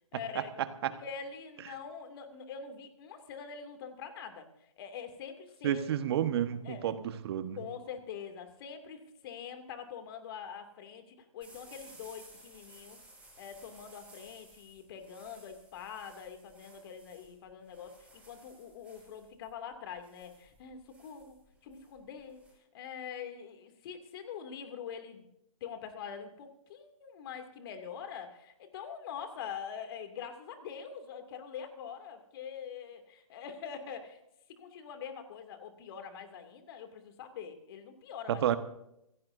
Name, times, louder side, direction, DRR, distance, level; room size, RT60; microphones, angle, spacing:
voice 1, 0.1-4.5 4.8-5.8 6.6-7.1 7.6-13.0 13.4-22.4 22.7-25.3 25.6-34.2 34.5-38.6, left 7 dB, 40° left, 7 dB, 2.6 m, -44 dB
voice 2, 5.6-7.6 38.3-38.6, right 10 dB, 45° right, 10 dB, 1.4 m, -30 dB
sound 1, 11.4-22.5, right 2 dB, 5° right, 7.8 m, -57 dB
26.5 x 16.5 x 2.7 m, 0.80 s
figure-of-eight pair, 135°, 18 cm